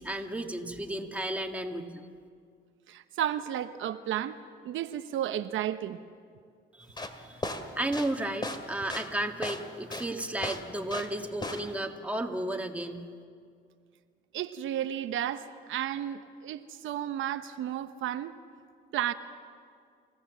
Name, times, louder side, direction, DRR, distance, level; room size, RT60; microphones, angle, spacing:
voice 1, 0.0-2.0 6.7-7.4 7.7-13.0, right 1 dB, 5° right, 3 dB, 1.8 m, -33 dB
voice 2, 2.9-4.4 4.6-6.0 14.3-18.3 18.9-19.1, right 11 dB, 80° right, 9 dB, 0.9 m, -33 dB
sound 1, 6.8-11.2 11.4-11.8, left 2 dB, 20° left, 2.2 m, -36 dB
27.5 x 16.0 x 7.4 m, 2.2 s
cardioid pair, 90°, 20 cm